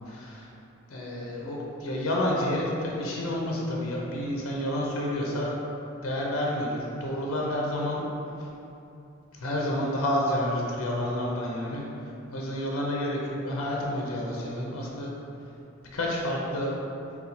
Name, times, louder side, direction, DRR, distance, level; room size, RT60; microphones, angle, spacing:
voice 1, 0.1-0.5 0.9-5.5 6.0-8.0 8.4-8.5 9.3-11.8 12.3-15.1 15.9-16.7, left 1 dB, 85° left, -3 dB, 0.6 m, -29 dB
4.1 x 2.3 x 4.1 m, 2.8 s
head